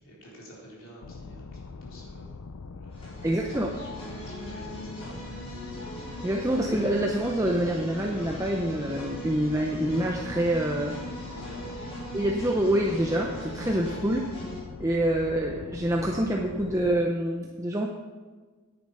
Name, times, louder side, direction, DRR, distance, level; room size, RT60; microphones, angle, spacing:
voice 1, 0.0-2.3 2.8-3.3 3.7-5.2 11.3-11.7, equal, 60° left, -4 dB, 4.1 m, -49 dB
sound 1, 1.0-17.0, left 4 dB, 80° left, 0.6 m, -43 dB
sound 2, 2.9-14.6, equal, 25° left, 3.8 m, -40 dB
voice 2, 3.2-3.8 6.2-11.0 12.1-14.3 14.8-17.9, right 1 dB, 15° right, 0 dB, 0.7 m, -26 dB
9.9 x 9.7 x 5.5 m, 1.4 s
head